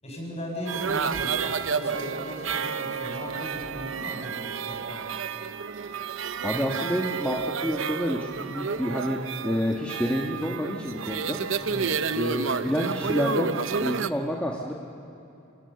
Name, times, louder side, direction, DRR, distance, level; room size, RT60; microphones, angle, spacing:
voice 1, 0.0-5.1 6.5-6.8 11.6-11.9, equal, 30° left, -1 dB, 7.0 m, -37 dB
sound 1, 0.7-14.1, right 5 dB, 65° right, 0.7 m, -30 dB
voice 2, 6.4-11.4 12.1-13.5 13.8-14.7, equal, 5° left, -2 dB, 1.5 m, -28 dB
27.5 x 26.5 x 6.9 m, 2.7 s
head